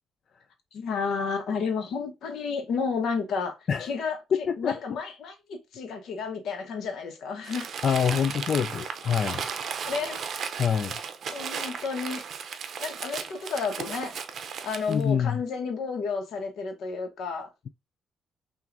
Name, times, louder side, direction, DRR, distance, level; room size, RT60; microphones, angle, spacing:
voice 1, 0.7-4.2 4.6-7.7 9.9-10.2 11.3-12.2 12.8-14.2 14.6-17.5, left 5 dB, 75° left, 1.1 m, -31 dB
voice 2, 4.3-4.8 7.8-9.5 10.6-11.0 14.9-15.4, left 7 dB, 55° left, 0.3 m, -26 dB
Crumpling crinkling, 7.4-15.0, right 6 dB, 60° right, 0.6 m, -35 dB
5.8 x 2.5 x 2.6 m
cardioid pair, 90°, 0 cm